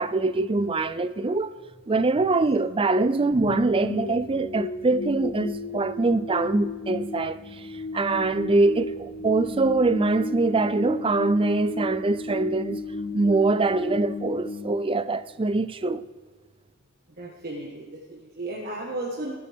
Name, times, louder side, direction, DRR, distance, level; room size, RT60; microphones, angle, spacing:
voice 1, 0.0-1.5 1.9-7.7 7.9-12.8 13.1-16.0, right 3 dB, 25° right, 0.4 m, -23 dB
sound 1, 3.3-15.5, left 2 dB, 40° left, 0.8 m, -34 dB
voice 2, 17.2-19.3, right 1 dB, 45° right, 1.7 m, -34 dB
25.0 x 8.6 x 3.6 m
head